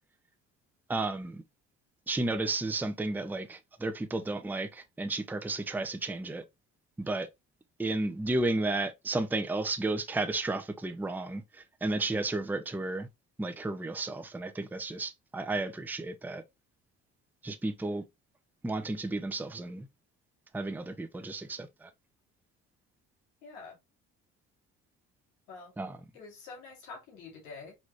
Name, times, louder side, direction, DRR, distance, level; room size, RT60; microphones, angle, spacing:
voice 1, 0.9-1.4 2.1-6.4 7.0-7.3 7.8-13.1 13.4-16.4 17.4-18.0 18.6-19.9 20.5-21.9 25.8-26.0, right 2 dB, 5° right, 0.6 m, -33 dB
voice 2, 23.4-23.8 25.5-25.7 26.1-27.8, left 4 dB, 80° left, 2.2 m, -46 dB
4.2 x 3.0 x 2.9 m
hypercardioid pair, 55°, 36 cm